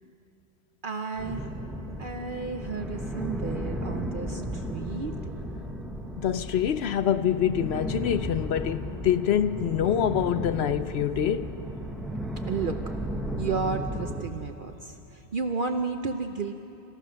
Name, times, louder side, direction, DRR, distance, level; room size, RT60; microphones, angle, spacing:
voice 1, 0.8-1.5 2.0-5.2 12.5-12.8 13.4-16.5, right 4 dB, 55° right, 0.8 m, -32 dB
sound 1, 1.2-14.2, equal, ahead, 1.2 m, -34 dB
voice 2, 6.2-11.5, left 9 dB, 70° left, 0.9 m, -25 dB
28.5 x 15.0 x 6.3 m
omnidirectional pair, 1.1 m